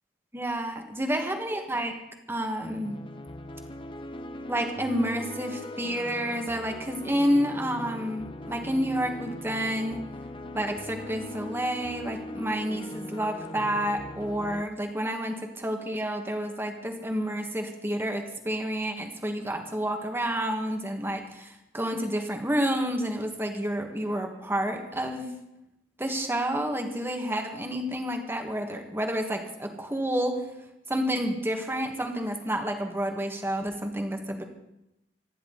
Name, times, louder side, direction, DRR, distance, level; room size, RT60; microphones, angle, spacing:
voice 1, 0.3-1.9 2.3-3.0 4.5-10.0 10.5-25.3 26.0-30.4 30.9-34.4, equal, 15° right, 3 dB, 2.0 m, -29 dB
sound 1, 2.6-14.6, left 1 dB, 30° left, 1.0 m, -40 dB
26.5 x 11.0 x 4.2 m, 0.87 s
head